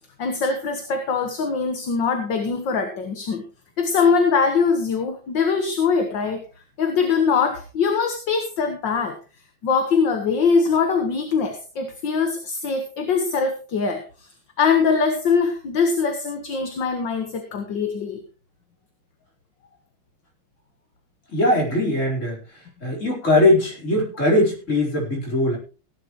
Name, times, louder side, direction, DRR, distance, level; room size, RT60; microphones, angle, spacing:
voice 1, 0.2-3.4 3.8-6.4 6.8-9.2 9.6-14.0 14.6-18.2, left 5 dB, 60° left, 6 dB, 2.1 m, -22 dB
voice 2, 21.3-22.4 22.8-25.6, left 1 dB, 35° left, -2 dB, 4.7 m, -20 dB
17.0 x 11.0 x 3.1 m, 0.33 s
omnidirectional pair, 2.3 m